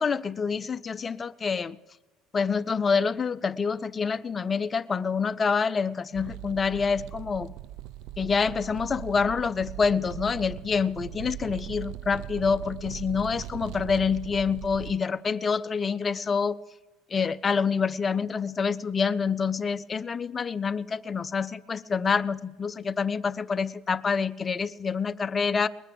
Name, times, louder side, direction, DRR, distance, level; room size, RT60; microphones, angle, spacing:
voice 1, 0.0-1.8 2.3-7.5 8.2-16.6 17.1-25.7, left 5 dB, 20° left, 0.5 m, -27 dB
sound 1, 6.1-15.0, right 14 dB, 65° right, 0.4 m, -40 dB
21.0 x 9.3 x 7.0 m
cardioid pair, 145°, 0 cm